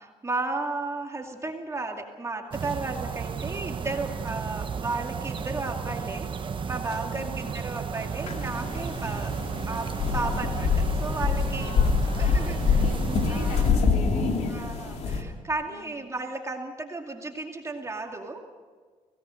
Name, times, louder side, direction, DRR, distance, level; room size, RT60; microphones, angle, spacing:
voice 1, 0.0-9.4 9.6-11.8 12.2-12.8 13.3-13.9 14.5-18.4, right 3 dB, 25° right, 2 dB, 2.4 m, -34 dB
sound 1, 2.5-13.7, right 6 dB, 45° right, 1.2 m, -33 dB
voice 2, 7.1-7.6 11.6-14.7 15.7-16.1, left 3 dB, 90° left, 2 dB, 2.9 m, -40 dB
sound 2, 8.3-15.2, left 5 dB, 60° left, 2.9 m, -26 dB
24.0 x 17.5 x 6.4 m, 1.5 s
cardioid pair, 95°, 12 cm